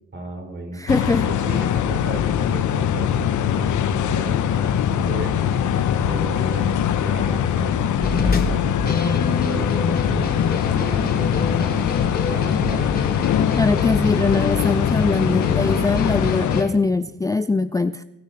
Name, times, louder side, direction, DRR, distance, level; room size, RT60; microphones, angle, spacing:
voice 1, 0.1-0.8 1.2-6.7 7.0-12.0 12.3-12.9, right 2 dB, 40° right, 4 dB, 4.0 m, -35 dB
voice 2, 0.7-1.3 13.6-18.0, left 3 dB, 10° left, 13 dB, 0.4 m, -22 dB
sound 1, 0.9-16.6, left 9 dB, 75° left, 1.0 m, -22 dB
sound 2, 8.0-16.7, left 3 dB, 30° left, 2.8 m, -27 dB
23.0 x 9.7 x 4.3 m, 0.99 s
cardioid pair, 90°, 30 cm